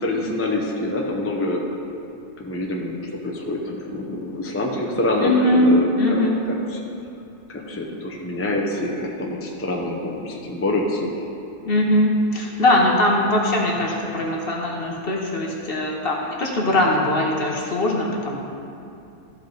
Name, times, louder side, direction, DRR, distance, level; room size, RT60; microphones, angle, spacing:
voice 1, 0.0-1.6 2.4-3.0 3.2-6.2 6.5-6.8 7.5-11.2, left 1 dB, 15° left, -1 dB, 0.5 m, -26 dB
voice 2, 5.2-6.5 11.6-18.4, left 1 dB, 45° left, -1 dB, 1.0 m, -21 dB
14.0 x 5.3 x 4.0 m, 2.5 s
omnidirectional pair, 1.6 m